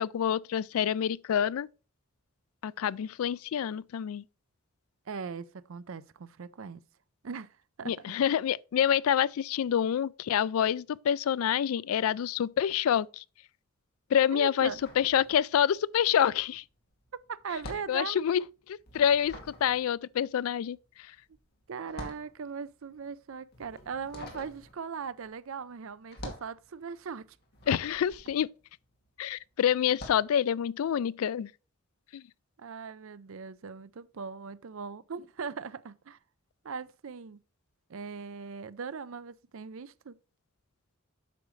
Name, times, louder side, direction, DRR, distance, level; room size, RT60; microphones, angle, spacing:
voice 1, 0.0-1.7 2.6-4.2 7.9-13.2 14.1-14.7 15.0-16.6 17.9-18.4 18.7-19.3 19.6-20.8 27.7-28.5 29.2-31.5 32.1-32.2, left 9 dB, 75° left, 0.3 m, -27 dB
voice 2, 5.1-6.8 7.2-7.9 14.3-14.8 17.3-18.2 21.7-27.4 32.6-36.2 36.6-37.4 37.9-40.2, right 5 dB, 65° right, 0.5 m, -39 dB
sound 1, 14.6-15.8 16.1-29.3 29.8-30.3, left 1 dB, 45° left, 2.1 m, -47 dB
8.4 x 6.2 x 3.1 m
head